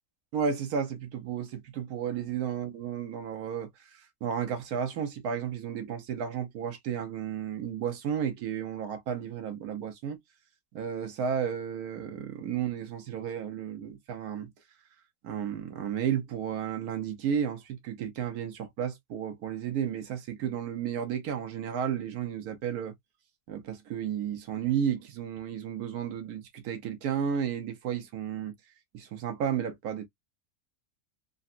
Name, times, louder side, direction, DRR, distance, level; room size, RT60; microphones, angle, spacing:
voice 1, 0.3-3.7 4.2-10.2 10.7-14.5 15.2-22.9 23.5-28.5 28.9-30.1, right 8 dB, 80° right, 1.3 m, -33 dB
3.8 x 2.2 x 2.5 m
omnidirectional pair, 1.6 m